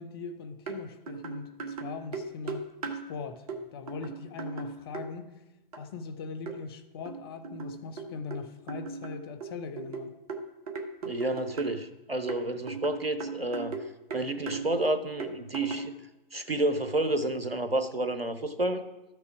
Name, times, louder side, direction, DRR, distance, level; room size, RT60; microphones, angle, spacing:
voice 1, 0.0-5.4 5.8-10.2, left 5 dB, 25° left, 8 dB, 0.6 m, -41 dB
sound 1, 0.7-0.8 1.1-3.0 3.5-3.6 3.9-5.1 5.7-5.8 6.5-6.6 7.1-8.4 8.7-11.8 12.3-13.9 14.1-14.6 15.2-15.9, right 4 dB, 40° right, 1.1 m, -37 dB
voice 2, 11.0-13.8 14.1-15.9 16.3-18.8, right 1 dB, 90° right, 10 dB, 1.0 m, -30 dB
12.5 x 6.6 x 4.8 m, 0.98 s
figure-of-eight pair, 130°, 29 cm